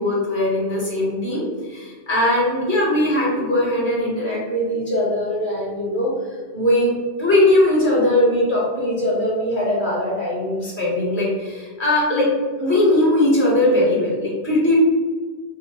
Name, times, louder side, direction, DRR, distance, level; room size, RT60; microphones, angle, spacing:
voice 1, 0.0-6.1 6.5-6.9 7.2-12.3 12.6-14.8, left 1 dB, 45° left, -5 dB, 1.4 m, -20 dB
5.6 x 2.1 x 3.0 m, 1.4 s
omnidirectional pair, 1.2 m